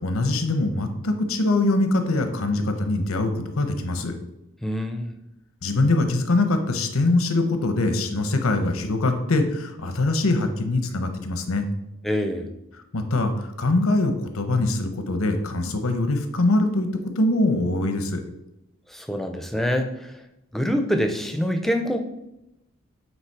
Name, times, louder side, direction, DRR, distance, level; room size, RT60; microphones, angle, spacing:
voice 1, 0.0-4.1 5.6-11.7 12.9-16.9 17.2-18.2, left 2 dB, 85° left, 7 dB, 0.8 m, -23 dB
voice 2, 4.6-5.1 12.0-12.5 18.9-20.1 20.5-22.0, equal, ahead, 5 dB, 0.5 m, -25 dB
8.1 x 3.1 x 4.6 m, 0.88 s
head